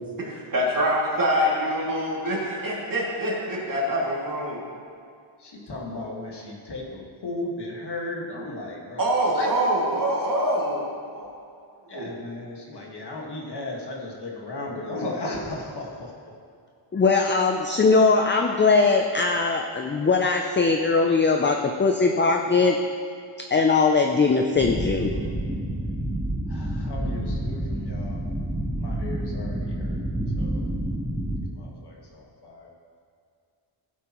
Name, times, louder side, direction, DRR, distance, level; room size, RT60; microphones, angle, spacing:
voice 1, 0.5-4.6 9.0-11.3 11.9-12.2, equal, 40° right, -5 dB, 2.4 m, -25 dB
voice 2, 5.4-9.5 11.9-16.4 25.1-25.2 26.5-30.0 30.4-30.6 31.5-32.7, left 2 dB, 50° left, -2 dB, 1.7 m, -36 dB
voice 3, 16.9-22.8 23.4-25.1, left 4 dB, 25° left, 3 dB, 0.4 m, -20 dB
sound 1, 24.6-31.4, right 1 dB, ahead, 0.9 m, -29 dB
15.5 x 8.3 x 3.0 m, 2.2 s
wide cardioid pair, 150°, 50 cm